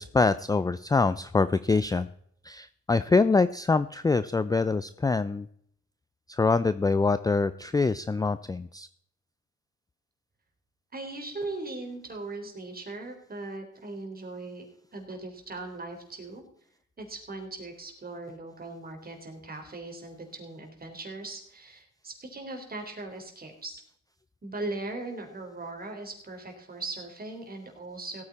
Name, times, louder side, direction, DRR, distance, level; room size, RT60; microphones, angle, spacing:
voice 1, 0.0-2.1 2.4-5.5 6.3-8.9, left 4 dB, 15° left, 14 dB, 0.4 m, -25 dB
voice 2, 10.9-14.7 14.9-16.4 17.0-23.8 24.4-28.2, right 2 dB, 30° right, 4 dB, 3.8 m, -39 dB
17.5 x 8.7 x 4.2 m, 0.65 s
cardioid pair, 90°, 30 cm